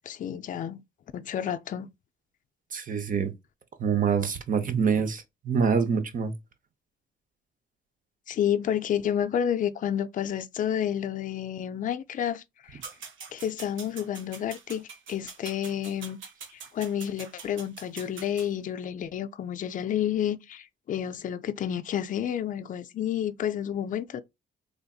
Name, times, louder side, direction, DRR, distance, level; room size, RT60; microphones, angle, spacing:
voice 1, 0.1-0.8 1.1-1.9 8.3-12.8 13.3-16.2 16.5-24.2, left 9 dB, 40° left, 0.4 m, -30 dB
voice 2, 2.7-3.3 3.8-6.3, right 6 dB, 45° right, 0.7 m, -26 dB
sound 1, 12.8-18.5, right 5 dB, 75° right, 1.0 m, -44 dB
3.4 x 2.5 x 2.3 m
cardioid pair, 90°, 20 cm